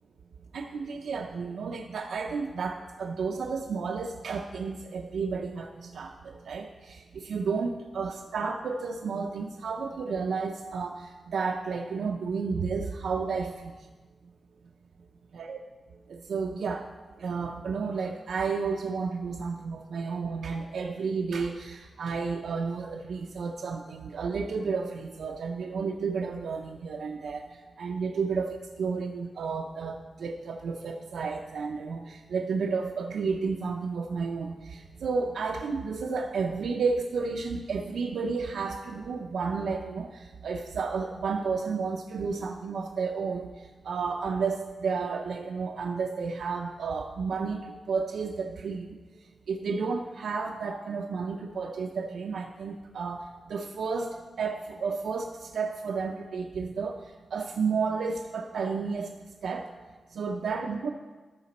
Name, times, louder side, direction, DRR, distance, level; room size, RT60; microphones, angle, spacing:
voice 1, 0.5-13.8 15.3-15.6 16.1-16.9 17.2-27.5 27.8-49.0 49.5-57.0 57.3-59.1 59.4-59.7 60.1-60.9, right 5 dB, 80° right, 2 dB, 0.5 m, -32 dB
13.0 x 5.9 x 4.2 m, 1.3 s
wide cardioid pair, 135°, 0 cm